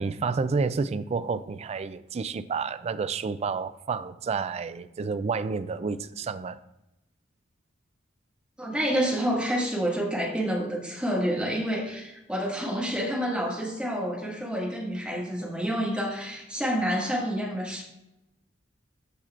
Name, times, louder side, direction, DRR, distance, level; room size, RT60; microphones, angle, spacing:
voice 1, 0.0-6.6, right 4 dB, 35° right, 0.3 m, -30 dB
voice 2, 8.6-17.8, equal, 5° right, 1.7 m, -28 dB
14.0 x 5.9 x 2.5 m
head